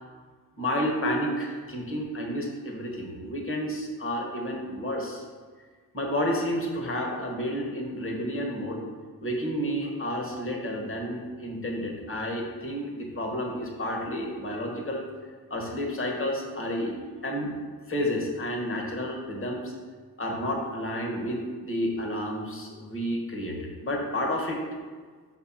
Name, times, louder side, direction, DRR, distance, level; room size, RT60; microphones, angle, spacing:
voice 1, 0.6-5.2 5.9-8.8 9.2-15.0 15.5-17.0 17.2-17.5 17.9-19.7 20.2-24.6, equal, 35° left, 0 dB, 1.5 m, -30 dB
5.5 x 4.4 x 5.7 m, 1.5 s
cardioid pair, 75°, 37 cm